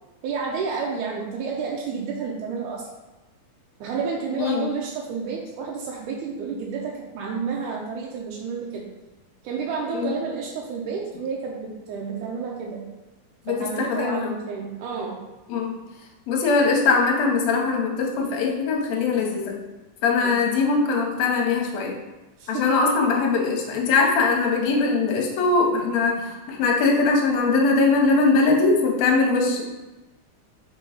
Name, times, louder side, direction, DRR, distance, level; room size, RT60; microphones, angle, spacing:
voice 1, 0.2-2.8 3.8-8.8 9.4-12.9 13.5-15.2 20.1-20.4 22.4-23.0, right 5 dB, 80° right, -2 dB, 2.1 m, -30 dB
voice 2, 4.3-4.7 9.9-10.1 13.5-14.3 15.5-15.7 16.3-19.6 20.0-21.9 22.5-29.6, left 4 dB, 70° left, 1 dB, 1.9 m, -21 dB
5.3 x 3.7 x 4.9 m, 1.1 s
omnidirectional pair, 3.7 m